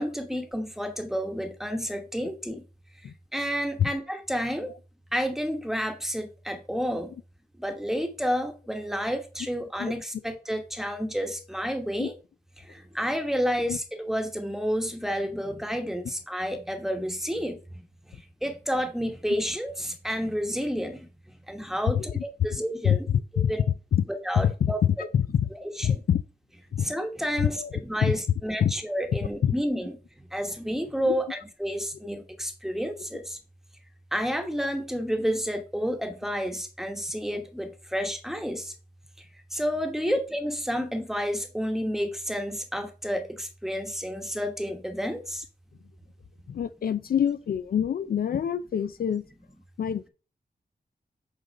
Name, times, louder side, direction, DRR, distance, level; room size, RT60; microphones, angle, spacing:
voice 1, 0.0-2.6 3.0-4.7 5.1-7.1 7.6-12.1 12.6-21.1 21.5-23.1 23.3-23.6 24.2-24.8 25.6-25.9 26.8-30.0 30.3-33.4 34.1-38.7 39.2-39.3 39.5-45.4, equal, ahead, 1.1 m, -30 dB
voice 2, 21.9-22.2 22.8-24.1 24.4-25.5 25.8-26.2 26.7-26.9 27.4-27.7 28.0-28.2 28.6-28.7 29.4-29.5 31.0-31.1 40.0-40.1 46.5-49.2 49.8-50.1, left 9 dB, 65° left, 0.4 m, -25 dB
8.1 x 3.9 x 5.3 m
wide cardioid pair, 175°, 17 cm